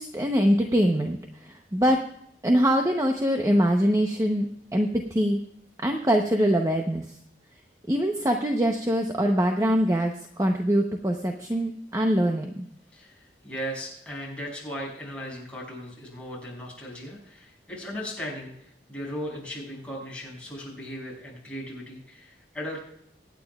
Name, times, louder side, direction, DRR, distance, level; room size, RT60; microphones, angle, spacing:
voice 1, 0.0-2.0 2.4-5.4 5.8-7.0 7.9-12.6, equal, 20° right, 3 dB, 0.8 m, -23 dB
voice 2, 12.9-22.8, equal, 5° left, -5 dB, 6.2 m, -37 dB
24.5 x 9.4 x 2.4 m, 0.72 s
head